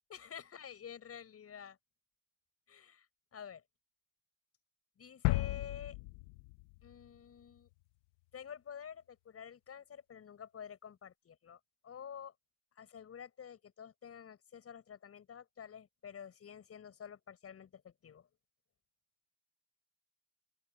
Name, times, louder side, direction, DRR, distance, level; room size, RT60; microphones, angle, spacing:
voice 1, 0.1-1.8 2.7-3.1 3.3-3.6 5.0-6.0 6.8-7.7 8.3-12.3 12.8-18.3, left 8 dB, 35° left, 7.5 m, -49 dB
sound 1, 5.2-7.2 7.6-7.7, left 23 dB, 75° left, 1.0 m, -35 dB
open air
supercardioid pair, 115°, 42 cm